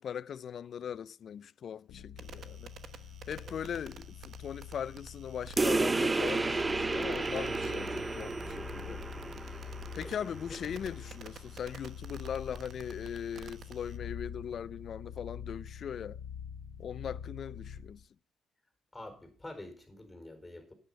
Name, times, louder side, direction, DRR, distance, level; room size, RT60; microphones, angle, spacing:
voice 1, 0.0-2.7 3.3-9.0 9.9-16.2 16.8-18.0, left 8 dB, 60° left, 0.4 m, -40 dB
sound 1, 1.9-18.0, left 8 dB, 85° left, 0.8 m, -46 dB
sound 2, 2.2-14.0, right 7 dB, 60° right, 1.0 m, -52 dB
voice 2, 3.4-3.8 10.0-10.2 18.9-20.7, left 1 dB, 15° left, 4.5 m, -47 dB
sound 3, 5.6-10.6, right 3 dB, 25° right, 0.5 m, -32 dB
10.5 x 8.8 x 5.4 m
cardioid pair, 90°, 0 cm